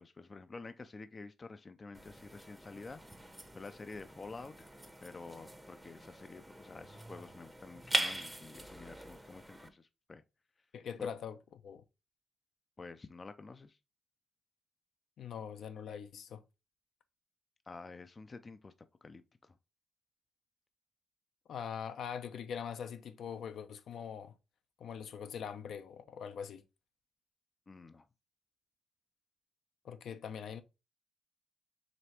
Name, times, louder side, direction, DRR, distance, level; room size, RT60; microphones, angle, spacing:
voice 1, 0.0-4.7 5.0-10.2 11.0-11.1 12.8-13.8 17.7-18.7 19.0-19.6 27.7-28.1, left 3 dB, 30° left, 0.4 m, -49 dB
sound 1, 1.9-9.7, right 1 dB, 10° right, 0.7 m, -42 dB
voice 2, 10.7-11.4 11.6-11.8 15.2-16.4 21.5-24.3 24.8-26.6 29.8-30.6, left 7 dB, 70° left, 0.6 m, -42 dB
5.0 x 3.3 x 2.8 m
cardioid pair, 115°, 0 cm